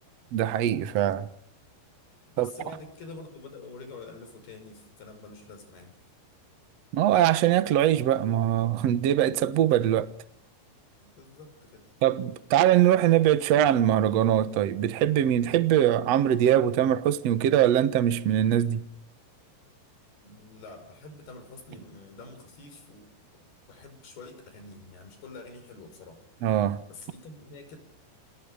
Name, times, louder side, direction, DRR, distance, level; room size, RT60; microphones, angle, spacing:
voice 1, 0.3-1.3 2.4-2.5 6.9-10.1 12.0-18.8 26.4-26.8, right 11 dB, 75° right, 1.5 m, -22 dB
voice 2, 2.3-5.9 11.0-11.8 20.2-23.1 23.3-23.4 23.7-26.2 26.9-27.8, left 3 dB, 65° left, 7.3 m, -46 dB
29.0 x 28.5 x 5.1 m
omnidirectional pair, 5.0 m